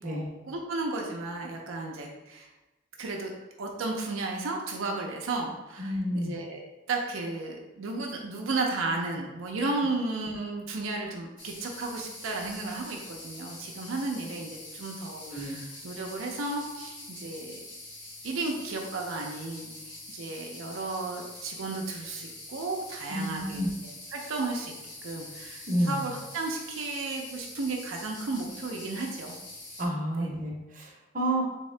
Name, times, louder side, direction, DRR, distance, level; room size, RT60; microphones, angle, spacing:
voice 1, 0.0-2.5 3.0-3.3 3.6-17.6 18.2-24.7 25.0-29.3 30.2-30.3, right 3 dB, 80° right, 0 dB, 0.5 m, -34 dB
voice 2, 5.8-6.3 15.2-15.6 23.1-23.7 25.7-26.1 29.8-31.4, right 1 dB, 40° right, -2 dB, 0.7 m, -30 dB
sound 1, 11.4-29.8, left 2 dB, 65° left, 1.3 m, -45 dB
3.6 x 3.4 x 3.2 m, 1.1 s
head